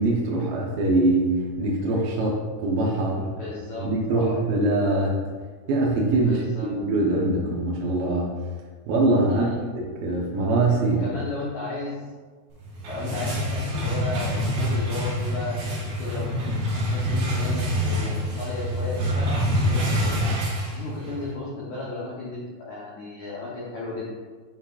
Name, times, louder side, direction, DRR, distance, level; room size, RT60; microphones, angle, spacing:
voice 1, 0.0-3.3 3.8-5.2 5.7-6.4 6.7-8.3 8.9-11.0, right 2 dB, 75° right, -3 dB, 2.2 m, -23 dB
voice 2, 3.4-4.4 6.2-6.7 9.3-9.6 10.9-12.0 12.9-16.3 16.8-20.2 20.7-24.1, left 2 dB, 85° left, -6 dB, 1.6 m, -34 dB
sound 1, 12.6-21.3, equal, 50° right, 2.9 m, -26 dB
8.7 x 5.8 x 2.4 m, 1.4 s
omnidirectional pair, 5.0 m